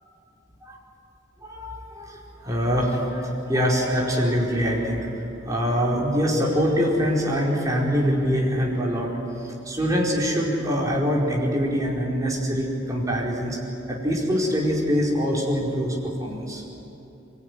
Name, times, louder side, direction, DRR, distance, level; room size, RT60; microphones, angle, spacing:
voice 1, 1.4-5.1 5.4-9.1 9.4-13.6 13.9-16.6, equal, 15° right, -3 dB, 4.4 m, -24 dB
23.5 x 21.5 x 9.8 m, 2.9 s
head